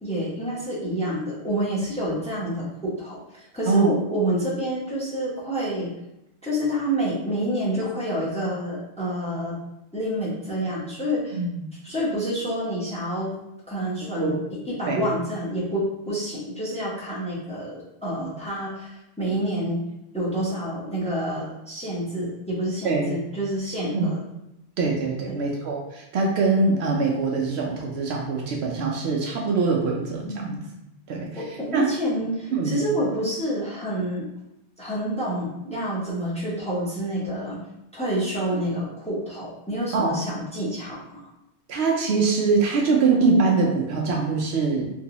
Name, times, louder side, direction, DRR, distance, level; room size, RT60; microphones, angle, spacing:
voice 1, 0.0-5.9 6.4-9.5 9.9-11.4 11.8-13.3 13.7-14.3 14.7-19.8 20.1-24.2 25.3-25.4 30.3-30.5 31.4-34.3 34.8-37.6 37.9-41.2, equal, 5° left, -7 dB, 0.8 m, -28 dB
voice 2, 11.3-11.7 14.0-14.3 14.9-15.1 18.2-18.3 19.3-19.4 22.8-23.2 23.9-24.1 24.8-30.6 31.1-31.4 31.7-31.9 32.5-32.8 39.9-40.2 41.7-44.9, right 4 dB, 70° right, -1 dB, 0.8 m, -23 dB
3.0 x 2.6 x 2.9 m, 0.89 s
omnidirectional pair, 1.2 m